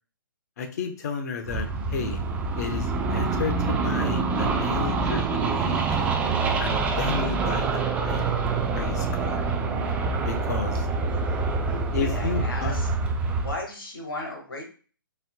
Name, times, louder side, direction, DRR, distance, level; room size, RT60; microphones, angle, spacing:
voice 1, 0.6-2.2 2.6-6.1 6.6-8.4 8.7-9.4 10.2-10.9 11.9-12.8, left 5 dB, 45° left, 6 dB, 0.8 m, -32 dB
sound 1, 1.5-13.5, right 4 dB, 10° right, 0.4 m, -26 dB
voice 2, 11.6-12.9 13.4-14.6, left 1 dB, 90° left, -1 dB, 1.6 m, -35 dB
4.4 x 3.9 x 2.2 m, 0.40 s
hypercardioid pair, 140°, 12 cm